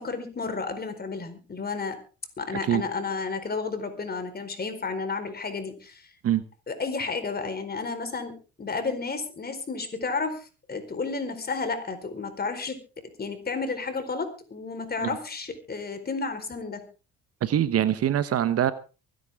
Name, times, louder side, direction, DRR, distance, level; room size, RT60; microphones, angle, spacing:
voice 1, 0.0-2.0 2.4-6.1 6.7-12.8 13.2-16.8, left 4 dB, 30° left, 8 dB, 4.5 m, -32 dB
voice 2, 17.4-18.7, right 10 dB, 50° right, 14 dB, 1.1 m, -23 dB
24.0 x 10.5 x 3.7 m, 0.34 s
supercardioid pair, 70°, 30 cm